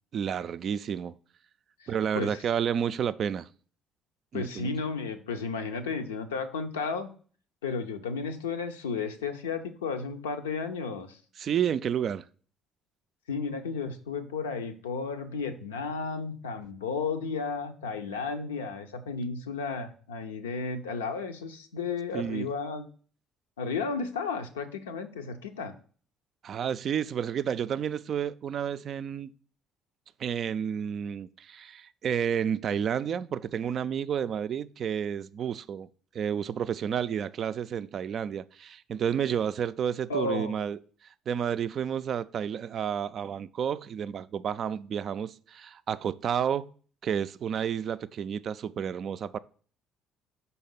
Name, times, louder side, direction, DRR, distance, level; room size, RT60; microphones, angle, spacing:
voice 1, 0.1-1.2 1.9-3.5 4.3-4.7 11.4-12.2 22.1-22.5 26.4-29.3 30.2-35.9 36.1-40.8 41.3-46.7 47.0-49.4, right 8 dB, 50° right, 0.3 m, -30 dB
voice 2, 1.8-2.4 4.3-7.1 7.6-11.2 13.3-22.9 23.6-25.7 40.1-40.6, left 4 dB, 80° left, 0.5 m, -33 dB
5.6 x 4.1 x 5.4 m
figure-of-eight pair, 50°, 0 cm